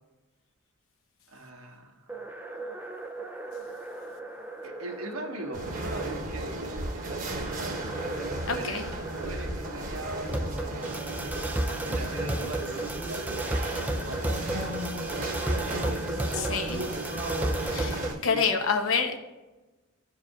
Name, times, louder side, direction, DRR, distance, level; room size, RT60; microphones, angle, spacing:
voice 1, 1.3-2.1 4.6-7.8 8.3-8.8 9.1-11.1 11.8-14.3 17.9-18.4, right 1 dB, 85° right, 1 dB, 1.4 m, -41 dB
sound 1, 2.1-18.1, right 1 dB, 10° right, 0.4 m, -35 dB
sound 2, 5.5-18.2, right 1 dB, 40° right, 1.1 m, -34 dB
voice 2, 8.5-8.9 16.3-16.9 17.7-19.2, left 5 dB, 70° left, 5 dB, 0.9 m, -28 dB
13.0 x 4.8 x 2.4 m, 1.1 s
head